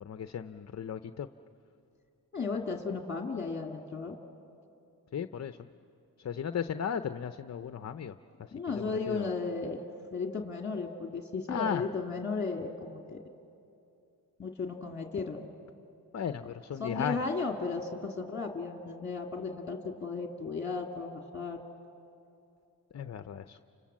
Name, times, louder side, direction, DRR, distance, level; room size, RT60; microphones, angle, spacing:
voice 1, 0.0-1.3 5.1-5.7 6.2-8.2 9.1-9.3 11.5-11.9 16.1-17.2 22.9-23.6, left 8 dB, 40° left, 10 dB, 0.6 m, -35 dB
voice 2, 2.3-4.2 8.5-9.8 10.1-13.2 14.4-15.5 16.8-21.6, left 4 dB, 25° left, 1 dB, 2.1 m, -35 dB
30.0 x 26.5 x 7.4 m, 2.7 s
cardioid pair, 95°, 40 cm